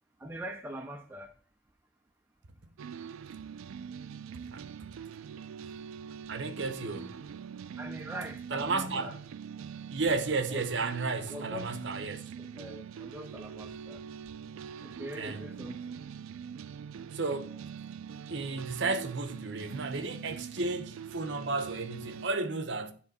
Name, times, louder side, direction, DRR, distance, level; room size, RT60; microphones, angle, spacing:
voice 1, 0.2-1.3 7.8-9.1 10.5-10.6 11.3-11.7 12.4-14.0 14.8-16.0, right 1 dB, 10° right, 0.4 m, -42 dB
sound 1, 2.8-22.3, right 7 dB, 80° right, 0.3 m, -43 dB
voice 2, 6.3-7.2 8.5-9.2 9.9-12.3 15.2-15.4 17.1-17.6 18.3-22.9, right 3 dB, 55° right, 0.7 m, -33 dB
10.0 x 3.6 x 4.1 m
head